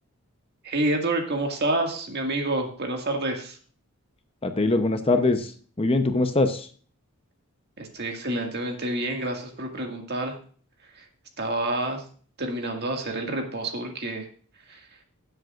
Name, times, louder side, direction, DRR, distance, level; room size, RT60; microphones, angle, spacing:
voice 1, 0.6-3.6 7.8-10.4 11.0-11.1 11.4-12.0 12.4-14.3 14.7-14.8, right 2 dB, 50° right, 2 dB, 2.0 m, -28 dB
voice 2, 4.4-5.5 5.8-6.7, left 2 dB, 25° left, 8 dB, 0.8 m, -22 dB
16.5 x 7.8 x 2.5 m, 0.43 s
head